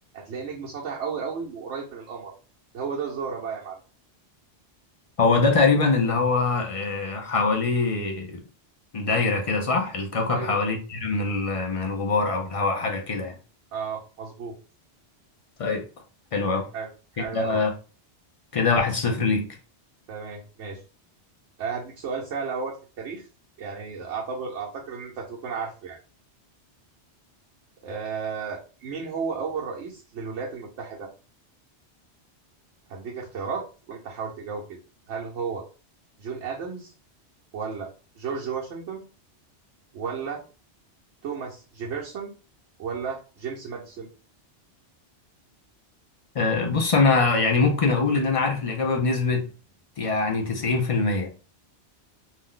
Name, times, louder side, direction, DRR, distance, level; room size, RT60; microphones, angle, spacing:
voice 1, 0.1-2.3 2.7-3.8 10.3-10.6 13.7-14.6 16.7-17.6 20.1-20.8 21.6-23.3 23.6-26.0 27.8-31.1 32.9-34.6 35.1-35.6 36.2-36.9 37.5-37.9 38.2-39.0 39.9-40.4 41.2-42.3 42.8-44.1, right 5 dB, 85° right, 1.0 m, -33 dB
voice 2, 5.2-8.4 8.9-13.3 15.6-15.8 16.3-16.6 17.3-17.7 18.5-19.5 46.3-49.5 50.0-51.3, left 4 dB, 50° left, 0.4 m, -23 dB
2.6 x 2.1 x 3.6 m
omnidirectional pair, 1.2 m